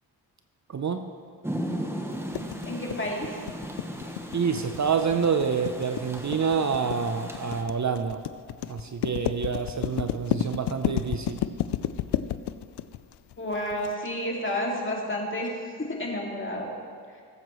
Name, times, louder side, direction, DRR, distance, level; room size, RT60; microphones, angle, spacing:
voice 1, 0.7-1.1 4.3-8.2 8.7-11.4, right 6 dB, 45° right, 7 dB, 0.7 m, -27 dB
Rain, 1.4-7.6, equal, 5° right, 1.2 m, -37 dB
sound 1, 2.3-13.9, left 12 dB, 70° left, 0.5 m, -31 dB
voice 2, 2.7-3.4 13.4-16.7, left 1 dB, 30° left, -2 dB, 2.3 m, -30 dB
17.5 x 8.1 x 3.1 m, 2.2 s
cardioid pair, 60°, 42 cm